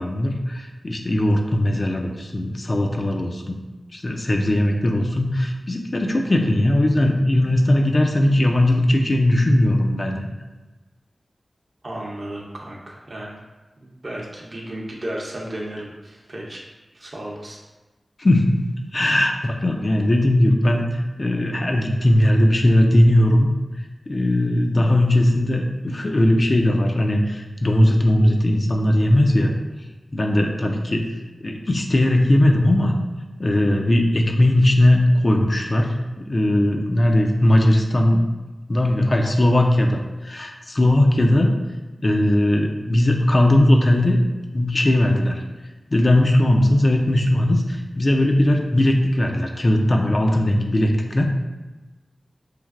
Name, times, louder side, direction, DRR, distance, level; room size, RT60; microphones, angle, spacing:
voice 1, 0.0-3.6 3.9-10.2 18.2-18.6 18.9-23.5 24.1-29.5 30.1-31.1 31.4-32.9 33.4-38.2 38.7-41.6 42.0-44.2 44.5-45.4 45.9-51.2, left 1 dB, 50° left, 2 dB, 0.4 m, -18 dB
voice 2, 11.8-13.4 13.8-16.6 16.9-17.6, right 1 dB, 55° right, -2 dB, 0.7 m, -34 dB
3.2 x 2.5 x 2.4 m, 1.2 s
cardioid pair, 45°, 0 cm